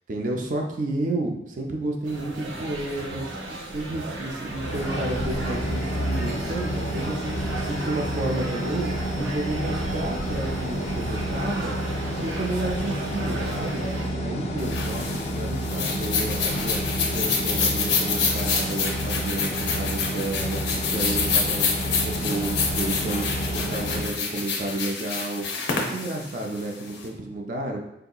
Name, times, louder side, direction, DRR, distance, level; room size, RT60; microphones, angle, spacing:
voice 1, 0.1-3.4 3.7-11.8 12.1-13.8 14.1-23.2 23.5-27.8, right 2 dB, 45° right, 1 dB, 0.4 m, -31 dB
sound 1, 2.0-14.1, right 2 dB, 85° right, 0.7 m, -35 dB
sound 2, 4.5-24.0, equal, 35° left, 0.3 m, -29 dB
sound 3, 14.6-27.0, left 5 dB, 85° left, 0.6 m, -27 dB
3.6 x 2.7 x 2.3 m, 0.83 s
head